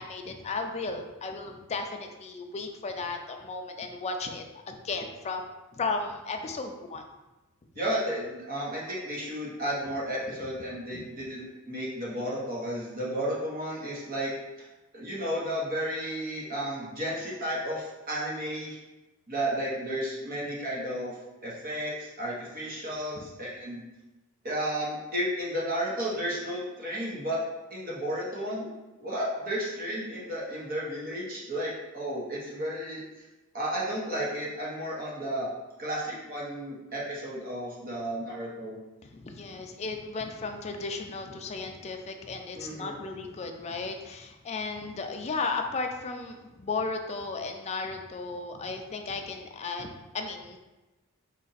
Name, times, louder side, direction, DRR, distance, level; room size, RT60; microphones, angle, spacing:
voice 1, 0.0-7.0 10.9-11.0 23.2-23.3 39.1-50.6, left 3 dB, 30° left, 4 dB, 0.4 m, -35 dB
voice 2, 7.8-14.3 14.6-14.7 14.9-18.8 19.3-21.2 21.4-23.8 24.4-27.4 27.7-28.7 29.0-33.0 33.5-35.5 35.8-38.8 42.5-43.0, equal, 40° right, -6 dB, 1.1 m, -33 dB
4.0 x 2.5 x 4.0 m, 1.1 s
head